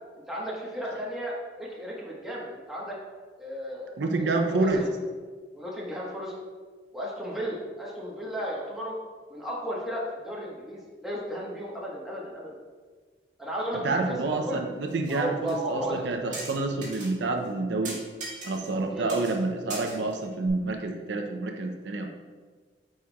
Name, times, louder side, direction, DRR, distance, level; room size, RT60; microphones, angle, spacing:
voice 1, 0.3-3.0 3.4-4.3 4.6-4.9 5.5-6.3 6.9-9.0 9.3-12.5 13.4-14.6 15.1-16.0 18.9-19.3, equal, ahead, -5 dB, 1.2 m, -34 dB
voice 2, 4.0-4.8 13.8-18.0 18.4-22.1, right 3 dB, 80° right, 3 dB, 0.6 m, -28 dB
sound 1, 14.9-15.2 15.5-15.6 16.3-17.1 17.4-17.5 17.8-18.8 19.1-19.4 19.7-20.5, right 2 dB, 45° right, 1.8 m, -39 dB
9.4 x 4.3 x 2.3 m, 1.5 s
head